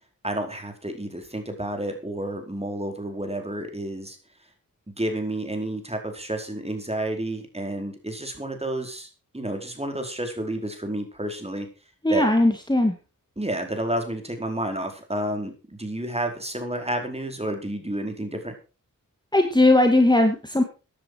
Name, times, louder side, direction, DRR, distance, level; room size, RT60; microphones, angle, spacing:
voice 1, 0.2-4.2 5.0-9.1 9.3-11.7 12.1-12.3 13.4-18.5, right 1 dB, 20° right, 4 dB, 4.7 m, -30 dB
voice 2, 12.0-12.9 19.3-20.6, left 1 dB, 10° left, 4 dB, 2.4 m, -18 dB
15.0 x 10.5 x 4.9 m, 0.32 s
cardioid pair, 55°, 34 cm